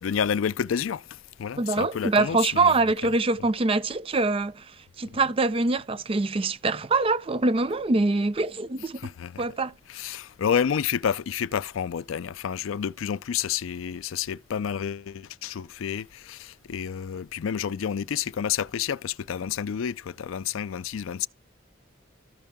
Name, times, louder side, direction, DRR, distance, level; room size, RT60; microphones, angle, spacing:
voice 1, 0.0-3.1 3.4-3.5 8.9-9.5 9.9-21.3, left 8 dB, 85° left, 0.4 m, -30 dB
voice 2, 1.6-9.1 9.4-9.7, right 3 dB, 25° right, 0.5 m, -24 dB
13.5 x 5.3 x 3.6 m
head